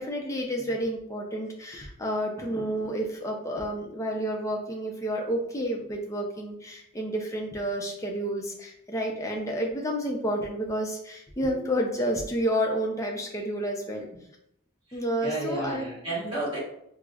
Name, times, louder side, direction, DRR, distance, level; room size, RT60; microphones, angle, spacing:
voice 1, 0.0-14.1 14.9-15.9, equal, 15° left, 0 dB, 0.4 m, -30 dB
voice 2, 14.9-16.6, right 2 dB, 20° right, -7 dB, 1.0 m, -33 dB
4.7 x 2.0 x 2.3 m, 0.76 s
head